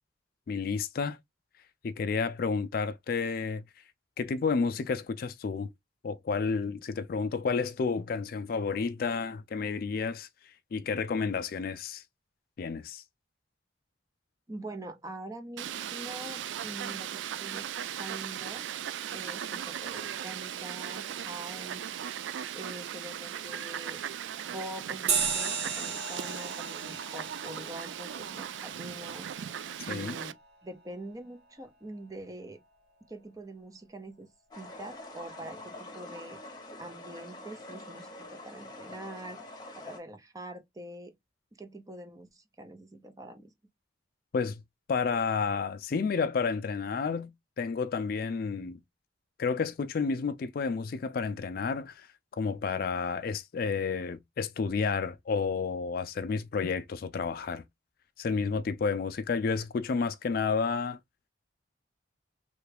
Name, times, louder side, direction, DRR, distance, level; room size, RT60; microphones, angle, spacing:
voice 1, 0.5-1.2 1.8-3.6 4.2-5.7 6.0-10.3 10.7-12.0 12.6-13.0 29.9-30.2 44.3-44.6 44.9-48.8 49.4-52.1 52.4-57.6 58.2-61.0, left 5 dB, 50° left, 0.3 m, -31 dB
voice 2, 14.5-18.6 19.1-22.2 22.5-24.1 24.5-29.3 29.9-30.4 30.6-32.6 33.1-34.3 34.6-39.4 39.7-41.1 41.6-43.5, right 1 dB, 20° right, 0.5 m, -44 dB
Fowl, 15.6-30.3, right 9 dB, 75° right, 0.3 m, -38 dB
sound 1, 25.1-30.0, right 6 dB, 60° right, 0.8 m, -35 dB
sound 2, 34.5-40.0, left 2 dB, 20° left, 0.9 m, -45 dB
3.3 x 2.2 x 3.2 m
head